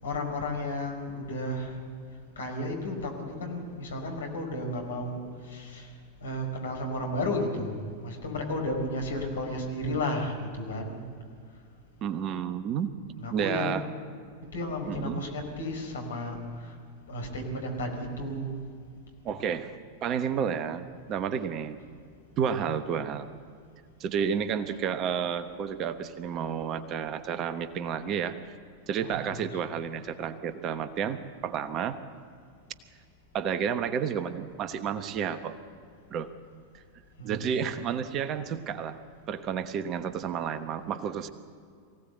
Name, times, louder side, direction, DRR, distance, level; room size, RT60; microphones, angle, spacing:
voice 1, 0.0-1.8 2.4-5.9 6.2-11.0 13.2-13.7 14.5-16.8 17.1-18.5 19.3-19.4 29.0-29.6 37.2-37.7, left 1 dB, 65° left, 2 dB, 4.8 m, -33 dB
voice 2, 12.0-12.9 13.3-13.9 14.9-15.2 19.2-19.7 20.0-21.8 22.4-23.3 24.0-28.4 28.9-31.2 31.4-32.0 33.3-35.6 36.1-36.3 37.2-39.0 39.3-41.3, right 7 dB, 35° right, 11 dB, 1.1 m, -31 dB
23.5 x 17.0 x 8.1 m, 2.2 s
figure-of-eight pair, 90°, 0 cm